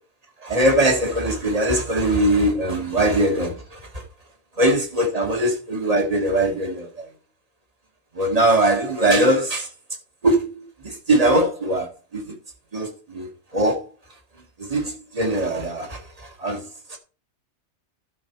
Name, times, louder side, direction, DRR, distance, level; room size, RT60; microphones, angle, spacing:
voice 1, 0.4-4.0 4.6-7.1 8.1-9.7 10.2-12.3 12.7-13.8 14.6-17.0, right 1 dB, 30° right, 1.9 m, -21 dB
12.0 x 6.2 x 4.6 m
omnidirectional pair, 1.2 m